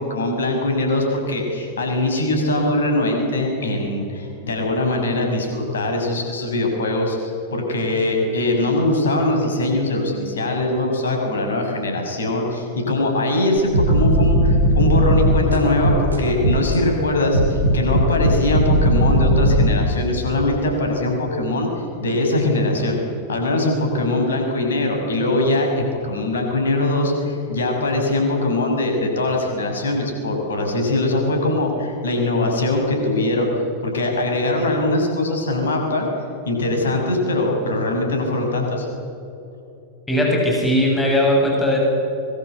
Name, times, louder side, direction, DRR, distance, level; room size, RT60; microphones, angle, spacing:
voice 1, 0.0-23.0 23.3-33.5 33.8-36.1 36.4-38.9, left 2 dB, 65° left, 2 dB, 6.9 m, -21 dB
sound 1, 13.6-16.8 17.3-19.7, equal, 80° right, 4.3 m, -17 dB
voice 2, 40.1-41.8, left 1 dB, 10° left, -1 dB, 7.7 m, -18 dB
24.5 x 23.5 x 8.2 m, 2.7 s
figure-of-eight pair, 90°, 0 cm